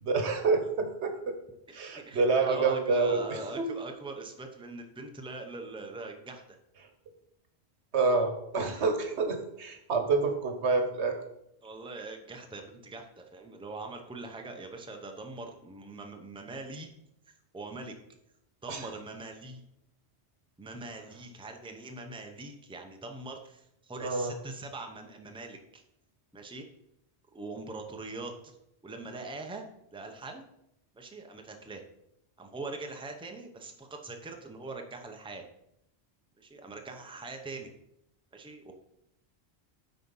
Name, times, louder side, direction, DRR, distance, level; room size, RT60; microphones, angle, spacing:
voice 1, 0.0-1.3 1.7-3.7 7.9-11.2 18.7-18.9 24.0-24.3, right 4 dB, 85° right, 5 dB, 1.4 m, -28 dB
voice 2, 1.7-6.6 11.6-16.9 17.5-17.9 18.6-19.6 20.6-25.8 26.3-26.7 27.3-28.6 28.8-29.6 29.9-30.4 30.9-31.8 32.4-35.4 36.4-37.7 38.3-38.7, right 3 dB, 5° right, 4 dB, 0.7 m, -42 dB
9.2 x 4.2 x 5.5 m, 0.81 s
omnidirectional pair, 1.1 m